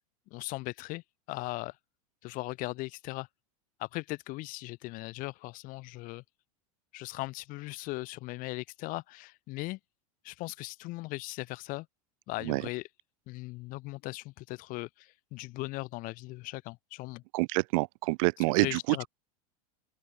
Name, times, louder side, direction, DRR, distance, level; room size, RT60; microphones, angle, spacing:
voice 1, 0.3-1.0 1.3-1.8 2.2-3.3 3.8-6.2 6.9-9.8 10.2-11.9 12.3-12.9 13.3-17.2 18.6-19.1, left 21 dB, 45° left, 0.7 m, -38 dB
voice 2, 17.3-19.1, right 26 dB, 65° right, 0.8 m, -27 dB
open air
supercardioid pair, 115°, 19 cm